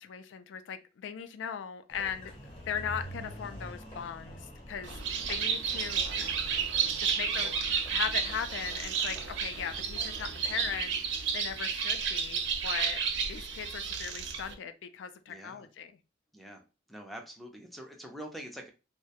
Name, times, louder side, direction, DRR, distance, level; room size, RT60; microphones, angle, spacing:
voice 1, 0.0-2.3 2.7-5.0 5.3-6.0 7.0-7.5 7.9-11.0 11.3-13.0 13.3-15.9, left 7 dB, 85° left, 0.3 m, -38 dB
Engine, 1.9-10.9, equal, 30° left, 0.8 m, -47 dB
Bird, 4.8-14.5, right 6 dB, 70° right, 0.4 m, -32 dB
voice 2, 15.3-15.7 16.3-16.6 16.9-18.7, equal, ahead, 0.4 m, -45 dB
2.2 x 2.1 x 2.7 m
head